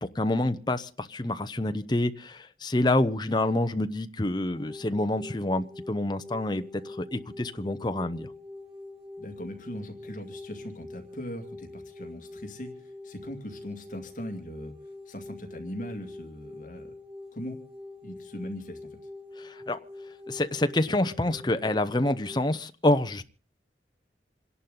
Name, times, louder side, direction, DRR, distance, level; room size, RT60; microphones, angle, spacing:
voice 1, 0.0-8.3 19.4-19.8 20.3-23.2, left 1 dB, 25° left, 0.8 m, -27 dB
sound 1, 4.5-22.6, left 2 dB, 35° right, 3.3 m, -45 dB
voice 2, 9.2-14.7 15.1-16.9 17.3-17.6 18.0-19.0, equal, 45° left, 2.1 m, -40 dB
27.5 x 11.0 x 3.9 m
head